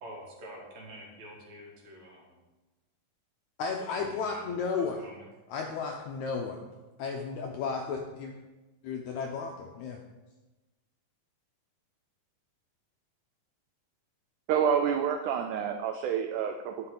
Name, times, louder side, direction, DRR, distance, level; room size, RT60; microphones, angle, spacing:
voice 1, 0.0-2.4 3.9-5.3, right 1 dB, 60° right, -2 dB, 2.8 m, -48 dB
voice 2, 3.6-5.0 5.5-6.7 7.0-8.4 8.8-10.0, left 5 dB, 80° left, 1 dB, 1.7 m, -33 dB
voice 3, 14.5-16.9, right 8 dB, 85° right, 6 dB, 1.8 m, -28 dB
10.0 x 6.6 x 3.8 m, 1.1 s
omnidirectional pair, 4.0 m